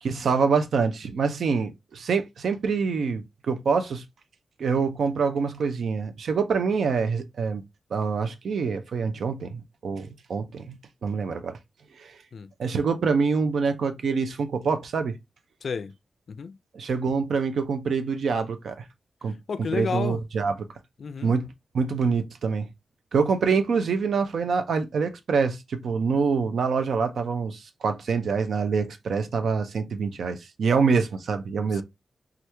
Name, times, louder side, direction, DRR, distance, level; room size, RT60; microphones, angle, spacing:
voice 1, 0.0-4.0 4.6-7.6 7.9-11.6 12.0-12.2 12.6-15.2 16.7-18.8 19.2-19.3 19.7-20.5 21.2-21.5 21.7-22.7 23.1-31.8, right 5 dB, 80° right, 0.4 m, -25 dB
voice 2, 15.6-15.9 16.3-16.6 19.5-20.2 21.0-21.3 31.7-31.8, left 5 dB, 65° left, 0.3 m, -31 dB
3.0 x 2.3 x 3.3 m
wide cardioid pair, 100°, 0 cm